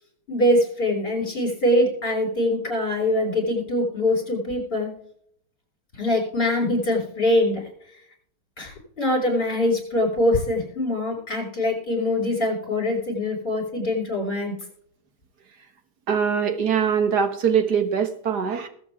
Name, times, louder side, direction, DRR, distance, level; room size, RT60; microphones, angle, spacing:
voice 1, 0.3-4.9 6.0-7.6 8.6-14.5, left 1 dB, 25° left, -1 dB, 6.5 m, -23 dB
voice 2, 16.1-18.7, right 7 dB, 50° right, 8 dB, 1.8 m, -22 dB
20.5 x 8.2 x 3.6 m, 0.65 s
omnidirectional pair, 2.4 m